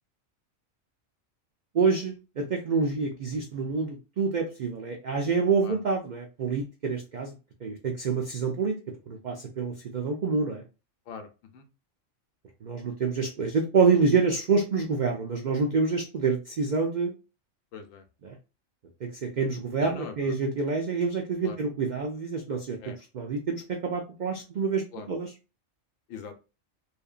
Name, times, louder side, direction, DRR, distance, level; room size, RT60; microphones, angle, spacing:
voice 1, 1.7-7.3 7.6-8.8 9.1-10.6 12.6-17.1 18.2-18.4 19.0-25.3, right 4 dB, 90° right, 2 dB, 0.4 m, -27 dB
voice 2, 17.7-18.0 19.8-20.3 21.4-21.6 22.8-23.0 24.9-25.1 26.1-26.4, left 5 dB, 75° left, 7 dB, 1.0 m, -41 dB
2.8 x 2.5 x 2.4 m, 0.31 s
omnidirectional pair, 1.4 m